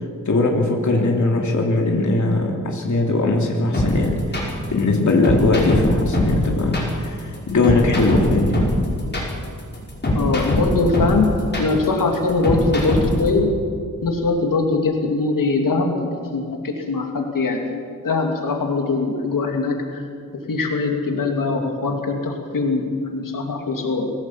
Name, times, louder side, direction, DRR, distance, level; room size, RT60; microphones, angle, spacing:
voice 1, 0.3-8.6, left 2 dB, 65° left, 0 dB, 2.7 m, -20 dB
sound 1, 3.7-13.3, left 1 dB, 35° left, 5.5 m, -22 dB
voice 2, 10.1-11.3 11.6-13.5 14.0-20.0 20.5-24.1, left 3 dB, 85° left, 2 dB, 2.8 m, -22 dB
24.0 x 17.0 x 7.5 m, 2.2 s
wide cardioid pair, 130°, 32 cm